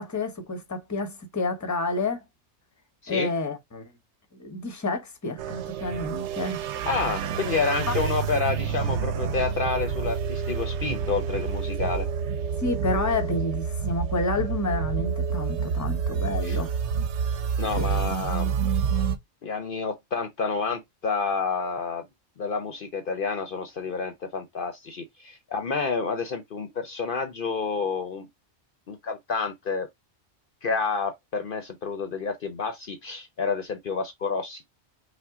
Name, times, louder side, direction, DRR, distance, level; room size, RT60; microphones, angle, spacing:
voice 1, 0.0-2.2 3.1-3.9 4.4-6.6 7.9-8.0 12.6-16.7 17.8-17.9, left 3 dB, 15° left, 0.9 m, -29 dB
sound 1, 5.4-19.2, right 7 dB, 90° right, 1.0 m, -28 dB
voice 2, 6.9-12.1 16.4-16.6 17.6-18.5 19.4-22.0 22.4-28.3 28.9-29.9 30.6-34.8, left 4 dB, 55° left, 0.8 m, -29 dB
5.8 x 2.2 x 3.6 m
omnidirectional pair, 1.2 m